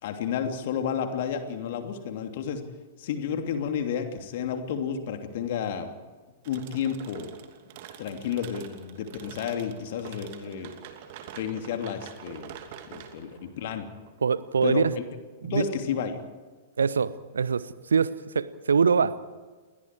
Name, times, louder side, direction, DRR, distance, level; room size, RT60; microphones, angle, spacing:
voice 1, 0.0-2.6 3.0-5.9 6.4-7.3 8.0-10.7 11.3-12.5 12.9-13.9 14.6-15.0 15.5-16.2, left 7 dB, 50° left, 5 dB, 3.0 m, -31 dB
sound 1, 6.4-15.1, right 9 dB, 45° right, 2.7 m, -46 dB
voice 2, 14.2-14.9 15.4-15.7 16.8-19.3, right 6 dB, 70° right, 17 dB, 1.0 m, -24 dB
29.5 x 22.0 x 4.8 m, 1.4 s
figure-of-eight pair, 105°, 0 cm